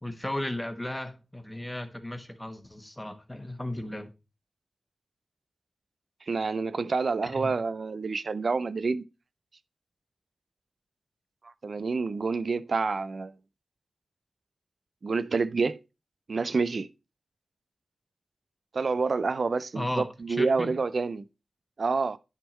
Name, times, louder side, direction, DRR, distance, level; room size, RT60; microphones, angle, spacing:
voice 1, 0.0-4.1 7.2-7.5 19.7-20.7, left 1 dB, 15° left, 1.3 m, -35 dB
voice 2, 6.3-9.0 11.4-13.3 15.0-15.8 16.3-16.9 18.7-21.2 21.8-22.2, right 4 dB, 65° right, 0.4 m, -28 dB
9.8 x 3.7 x 4.2 m
cardioid pair, 60°, 0 cm